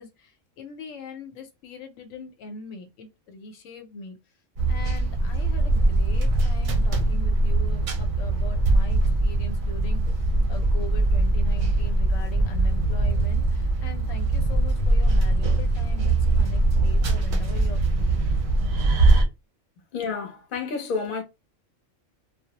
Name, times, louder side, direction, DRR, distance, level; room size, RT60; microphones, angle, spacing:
voice 1, 0.0-4.2 4.7-18.2, left 4 dB, 90° left, 1.0 m, -41 dB
sound 1, 4.5-19.2, right 2 dB, 55° right, 0.6 m, -22 dB
voice 2, 19.9-21.2, left 5 dB, 50° left, 0.8 m, -30 dB
2.3 x 2.0 x 2.8 m
omnidirectional pair, 1.3 m